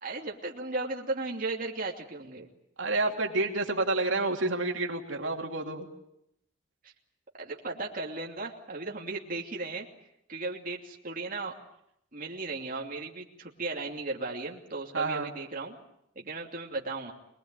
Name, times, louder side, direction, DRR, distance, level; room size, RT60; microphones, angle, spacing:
voice 1, 0.0-2.5 6.8-6.9 7.3-9.9 10.3-11.5 12.1-15.8 16.1-17.1, right 3 dB, 45° right, -1 dB, 2.9 m, -36 dB
voice 2, 2.8-5.9 14.9-15.3, right 2 dB, 75° right, 2 dB, 3.0 m, -29 dB
26.0 x 21.0 x 9.1 m, 0.78 s
head